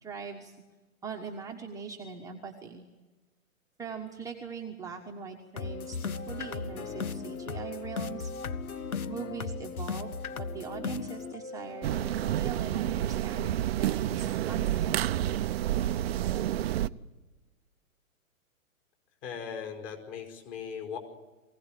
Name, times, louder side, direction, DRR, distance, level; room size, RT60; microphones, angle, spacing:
voice 1, 0.0-0.5 1.0-2.8 3.8-8.3 9.1-13.5 13.8-15.0, right 5 dB, 10° right, 0 dB, 1.3 m, -41 dB
sound 1, 5.5-13.5, left 5 dB, 85° left, 1.5 m, -37 dB
sound 2, 11.8-16.9, right 12 dB, 45° right, 0.7 m, -29 dB
voice 2, 19.2-21.0, left 7 dB, 30° left, 4 dB, 5.1 m, -38 dB
23.5 x 17.5 x 9.2 m, 1.2 s
hypercardioid pair, 145°, 42 cm